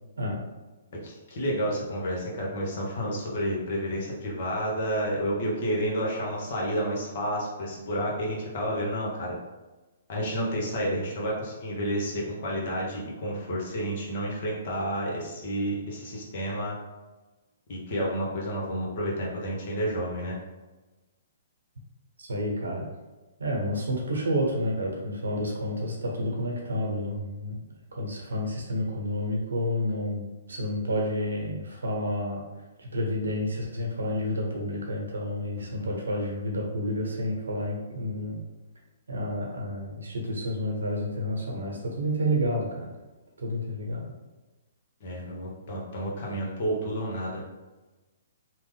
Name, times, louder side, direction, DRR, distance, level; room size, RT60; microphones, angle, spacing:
voice 1, 1.0-9.4 10.1-16.8 17.7-20.4 35.5-35.9 45.0-47.4, equal, 55° left, -2 dB, 1.0 m, -30 dB
voice 2, 22.2-22.8 23.4-27.6 27.9-32.4 32.8-38.4 39.1-42.9 43.4-44.0, equal, 80° right, -1 dB, 0.9 m, -30 dB
3.0 x 2.1 x 3.4 m, 1.1 s
hypercardioid pair, 130°, 0 cm